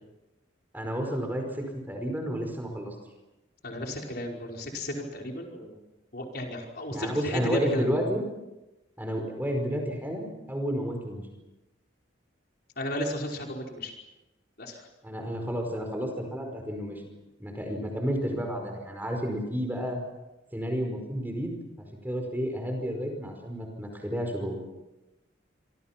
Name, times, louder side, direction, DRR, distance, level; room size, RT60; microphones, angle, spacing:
voice 1, 0.7-2.9 6.9-8.2 9.0-11.2 15.0-17.0 17.4-20.0 20.5-24.6, equal, 10° right, 3 dB, 5.0 m, -31 dB
voice 2, 3.6-5.8 6.1-7.9 12.8-13.9 14.6-14.9, left 1 dB, 55° left, 1 dB, 5.0 m, -34 dB
26.5 x 26.5 x 6.0 m, 1.0 s
head